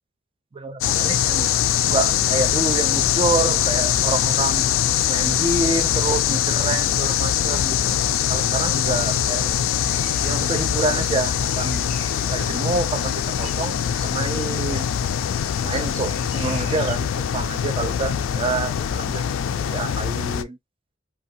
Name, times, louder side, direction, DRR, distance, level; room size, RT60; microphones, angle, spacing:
voice 1, 0.5-1.5 1.8-4.7 5.1-8.0 8.3-9.5 10.2-11.9 12.3-14.9 15.6-19.2 19.7-20.6, right 3 dB, 25° right, 0.4 m, -27 dB
sound 1, 0.8-20.4, left 10 dB, 75° left, 0.3 m, -22 dB
sound 2, 8.8-17.0, right 1 dB, 85° right, 1.3 m, -40 dB
2.6 x 2.3 x 2.7 m
head